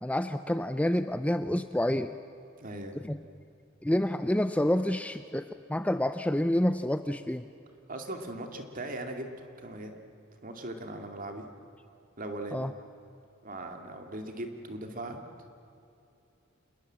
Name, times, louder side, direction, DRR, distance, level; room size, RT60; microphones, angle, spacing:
voice 1, 0.0-2.2 2.9-3.2 3.8-7.5 12.5-12.7, left 1 dB, 5° left, 10 dB, 0.5 m, -28 dB
voice 2, 2.6-3.0 7.9-9.9 10.4-11.5 12.2-12.6 13.4-15.2, right 1 dB, 40° right, 4 dB, 2.6 m, -39 dB
27.0 x 20.5 x 7.6 m, 2.8 s
head